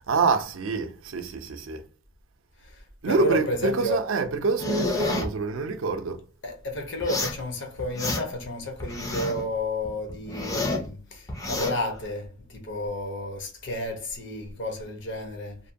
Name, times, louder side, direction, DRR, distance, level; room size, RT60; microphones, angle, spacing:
voice 1, 0.1-1.8 3.0-6.2, right 4 dB, 75° right, 0.4 m, -26 dB
voice 2, 2.6-4.0 6.4-15.6, left 1 dB, 60° left, 0.7 m, -31 dB
sound 1, 4.6-5.3 7.0-7.4 7.8-8.5 8.8-9.5 9.8-10.9 11.3-11.7, left 2 dB, 15° left, 0.4 m, -29 dB
2.6 x 2.2 x 2.5 m
head